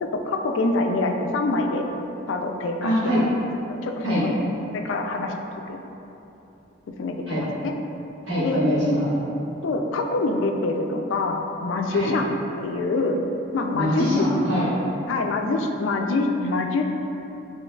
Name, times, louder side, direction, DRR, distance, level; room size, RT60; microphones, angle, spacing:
voice 1, 0.0-1.9 2.3-2.9 3.7-4.0 4.7-5.3 5.7-5.8 7.0-7.7 8.4-8.6 9.6-12.3 12.6-13.2 13.5-14.1 15.1-16.9, left 3 dB, 70° left, 4 dB, 0.3 m, -25 dB
voice 2, 2.8-3.2 4.0-4.2 7.3-7.4 8.3-9.1 11.9-12.1 13.7-14.7, equal, 65° right, -11 dB, 1.4 m, -23 dB
5.2 x 3.1 x 2.3 m, 3.0 s
head